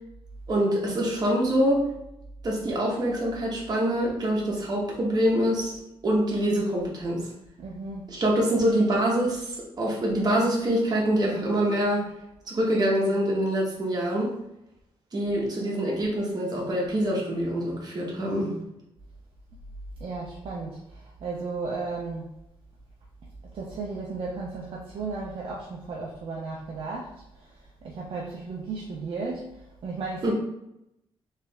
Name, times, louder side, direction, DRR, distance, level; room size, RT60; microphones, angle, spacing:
voice 1, 0.5-1.9 2.4-5.7 6.0-7.3 8.1-12.0 12.5-14.3 15.1-18.5 30.2-30.3, right 1 dB, 40° right, -3 dB, 1.3 m, -25 dB
voice 2, 7.6-8.1 20.0-22.3 23.4-27.5 27.8-30.3, right 3 dB, 60° right, -3 dB, 0.6 m, -35 dB
3.4 x 3.3 x 3.4 m, 0.84 s
cardioid pair, 120°, 10 cm